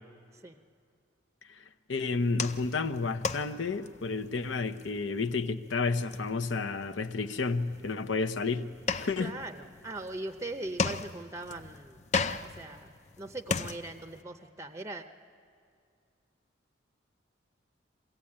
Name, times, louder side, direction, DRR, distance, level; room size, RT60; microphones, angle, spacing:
voice 1, 1.9-8.7 8.9-9.4, left 4 dB, 80° left, 8 dB, 0.8 m, -31 dB
sound 1, 2.1-14.2, left 4 dB, 35° left, 0.5 m, -37 dB
voice 2, 9.2-12.0 12.4-12.9 13.2-15.1, right 2 dB, 15° right, 7 dB, 0.6 m, -40 dB
23.0 x 16.0 x 8.7 m, 2.3 s
head